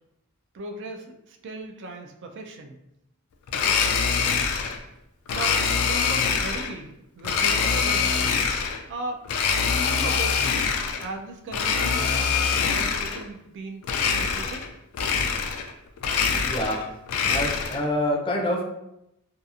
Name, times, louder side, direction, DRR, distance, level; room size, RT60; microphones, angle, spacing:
voice 1, 0.5-2.8 3.5-3.8 5.3-8.2 8.9-10.5 11.0-13.8 14.1-14.7, right 2 dB, 55° right, 3 dB, 0.4 m, -37 dB
Domestic sounds home sounds, 3.5-4.8 5.3-6.7 7.2-8.8 9.3-11.1 11.5-13.2 13.8-14.7 14.9-15.7 16.0-17.9, left 6 dB, 85° left, 0.3 m, -24 dB
voice 2, 16.4-16.9 17.3-18.6, left 1 dB, 25° left, -1 dB, 0.5 m, -26 dB
2.7 x 2.4 x 2.4 m, 0.83 s
head